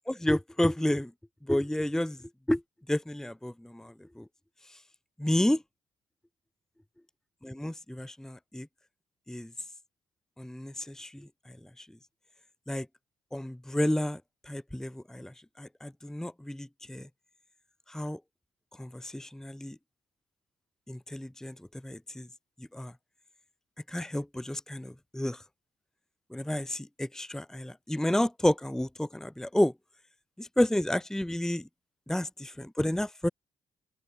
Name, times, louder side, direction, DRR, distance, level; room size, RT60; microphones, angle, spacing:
voice 1, 0.1-1.1 1.5-2.2 2.5-2.6 2.9-4.2 5.2-5.6 7.4-8.7 9.3-9.5 10.4-11.3 11.8-11.9 12.7-12.9 13.3-14.2 14.5-17.1 17.9-18.2 18.8-19.8 20.9-21.5 21.8-22.3 22.7-22.9 23.9-25.4 26.3-29.7 30.4-31.7 32.1-33.3, left 1 dB, 5° left, 0.9 m, -30 dB
open air
cardioid pair, 90°, 12 cm